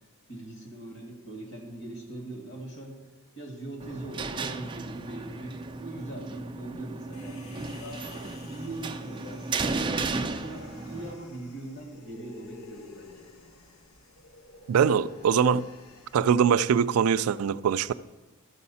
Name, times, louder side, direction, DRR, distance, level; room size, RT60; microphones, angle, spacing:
voice 1, 0.3-3.0 3.4-8.1 8.5-13.1, right 2 dB, 55° left, 2.2 m, -41 dB
sound 1, 3.8-11.1, right 3 dB, 20° right, 0.4 m, -34 dB
Human voice, 7.1-16.5, left 3 dB, 85° left, 1.0 m, -51 dB
voice 2, 14.7-15.7 16.1-18.0, right 7 dB, 85° right, 0.3 m, -22 dB
12.5 x 6.5 x 4.2 m
head